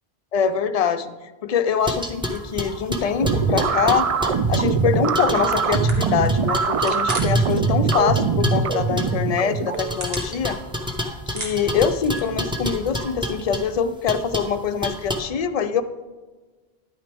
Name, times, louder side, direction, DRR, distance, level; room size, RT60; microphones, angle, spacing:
voice 1, 0.3-4.1 4.5-10.6 11.3-15.8, left 7 dB, 50° left, 10 dB, 0.5 m, -24 dB
sound 1, 1.9-4.8 5.1-9.2 9.8-13.6 14.1-14.5 14.8-15.2, left 1 dB, 5° right, 0.7 m, -29 dB
sound 2, 3.2-10.0, right 5 dB, 50° right, 0.4 m, -22 dB
sound 3, 5.9-7.5 7.8-8.4 8.9-9.0 9.5-10.9 11.2-12.5, right 2 dB, 70° right, 1.6 m, -35 dB
10.5 x 8.9 x 3.4 m, 1.3 s
omnidirectional pair, 1.0 m